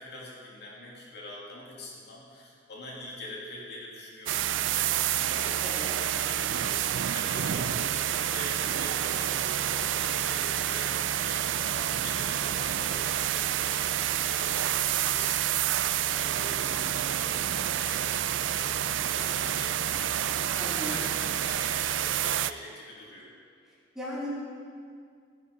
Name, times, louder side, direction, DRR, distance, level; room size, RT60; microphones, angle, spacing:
voice 1, 0.0-23.3, left 1 dB, 60° left, -4 dB, 2.8 m, -44 dB
sound 1, 4.3-22.5, right 11 dB, 80° right, 0.4 m, -28 dB
voice 2, 20.6-20.9 23.9-24.3, left 1 dB, 5° right, -9 dB, 4.2 m, -36 dB
15.5 x 10.5 x 5.2 m, 2.2 s
head